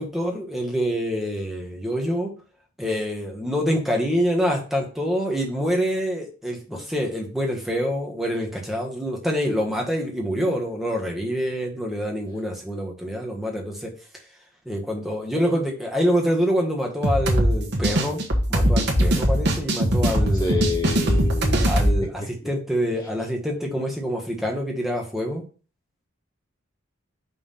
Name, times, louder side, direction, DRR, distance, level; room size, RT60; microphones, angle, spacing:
voice 1, 0.0-2.3 2.8-13.9 14.6-18.2 18.5-20.6 21.6-25.4, equal, ahead, -1 dB, 1.3 m, -26 dB
sound 1, 17.0-22.0, equal, 50° right, 1.4 m, -21 dB
voice 2, 20.4-22.1, left 3 dB, 20° left, -1 dB, 0.7 m, -28 dB
5.5 x 3.5 x 5.6 m, 0.37 s
head